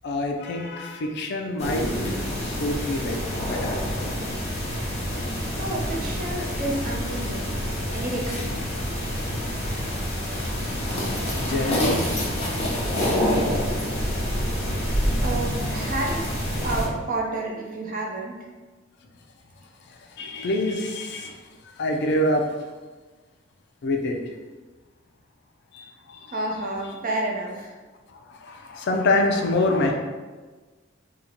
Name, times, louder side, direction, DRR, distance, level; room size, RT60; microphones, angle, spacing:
voice 1, 0.0-3.2 3.5-3.8 11.1-12.0 20.2-21.4 21.8-22.4 23.8-24.2 25.7-26.3 28.3-30.0, left 1 dB, 55° left, 2 dB, 0.4 m, -26 dB
sound 1, 1.6-16.9, equal, 35° left, 0.8 m, -27 dB
voice 2, 5.6-7.5 7.9-8.5 15.2-16.2 16.6-18.4 26.3-27.7, right 2 dB, 45° right, -1 dB, 0.6 m, -30 dB
2.9 x 2.1 x 3.8 m, 1.3 s
head